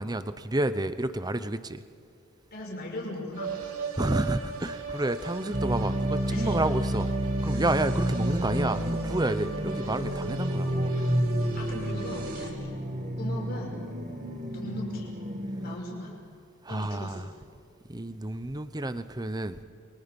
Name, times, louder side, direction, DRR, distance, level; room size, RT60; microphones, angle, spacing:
voice 1, 0.0-1.8 4.0-7.1 7.4-10.9 16.6-17.3 17.9-19.6, right 1 dB, 20° right, 12 dB, 0.8 m, -30 dB
voice 2, 2.5-3.5 6.3-6.6 11.5-12.7 13.2-13.8 14.5-15.1 15.6-16.1 16.7-17.3, left 1 dB, 50° left, -2 dB, 6.0 m, -38 dB
sound 1, 3.3-12.5, right 5 dB, 80° right, 3.0 m, -39 dB
sound 2, 5.5-15.8, equal, 35° right, 2.1 m, -30 dB
29.0 x 24.0 x 5.4 m, 2.3 s
head